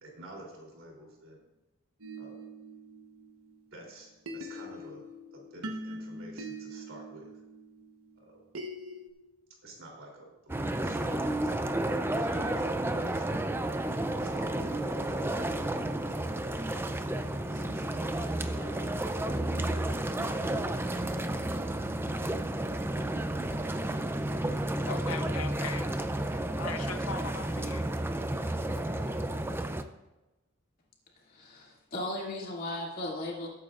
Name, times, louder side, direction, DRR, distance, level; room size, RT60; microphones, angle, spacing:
voice 1, 0.0-1.4 2.2-2.4 3.7-5.1 5.3-7.3 8.2-8.4 9.6-13.4 13.9-19.0, right 1 dB, 70° right, -1 dB, 3.3 m, -49 dB
sound 1, 2.0-3.8 4.3-9.1, right 1 dB, 85° right, 1.1 m, -43 dB
sound 2, 10.5-29.8, right 1 dB, 10° right, 0.4 m, -31 dB
voice 2, 24.9-25.9 26.1-26.2 26.6-28.0, left 5 dB, 80° left, 8 dB, 0.9 m, -39 dB
voice 3, 31.3-33.5, left 1 dB, 45° left, -3 dB, 2.5 m, -36 dB
19.5 x 9.0 x 2.5 m, 1.1 s
head